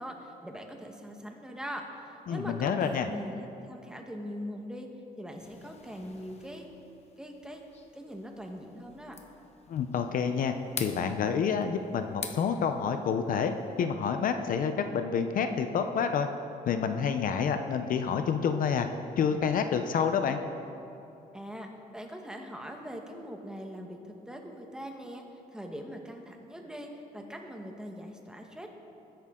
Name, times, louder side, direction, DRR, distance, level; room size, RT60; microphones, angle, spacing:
voice 1, 0.0-4.9 5.2-6.7 7.2-7.6 7.9-9.2 21.3-25.2 25.5-28.7, equal, 5° right, 2 dB, 1.3 m, -42 dB
voice 2, 2.3-3.1 9.7-10.5 10.8-13.5 13.8-16.3 16.7-18.9 19.2-20.4, left 6 dB, 55° left, 7 dB, 0.7 m, -28 dB
sound 1, 5.4-13.8, left 6 dB, 40° left, 1.1 m, -47 dB
21.0 x 10.0 x 3.8 m, 2.8 s
cardioid pair, 140°, 16 cm